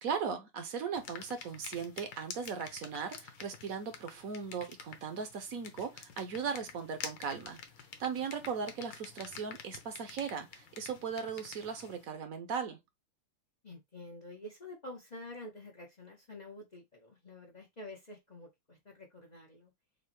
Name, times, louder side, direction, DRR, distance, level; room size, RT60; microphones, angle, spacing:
voice 1, 0.0-7.6 8.0-12.8, right 6 dB, 65° right, 0.9 m, -38 dB
sound 1, 0.9-12.0, left 7 dB, 65° left, 1.4 m, -49 dB
voice 2, 13.6-19.7, left 1 dB, 85° left, 0.3 m, -48 dB
6.5 x 2.2 x 3.0 m
omnidirectional pair, 2.4 m